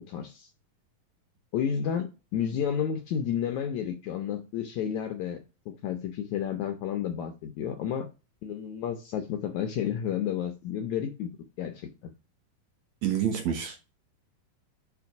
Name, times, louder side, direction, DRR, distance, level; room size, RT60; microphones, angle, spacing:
voice 1, 0.1-0.5 1.5-5.4 5.7-8.1 8.4-11.3 11.6-11.9, left 8 dB, 75° left, 1.8 m, -31 dB
voice 2, 13.0-13.8, right 9 dB, 65° right, 2.1 m, -27 dB
5.2 x 5.2 x 5.8 m
omnidirectional pair, 4.2 m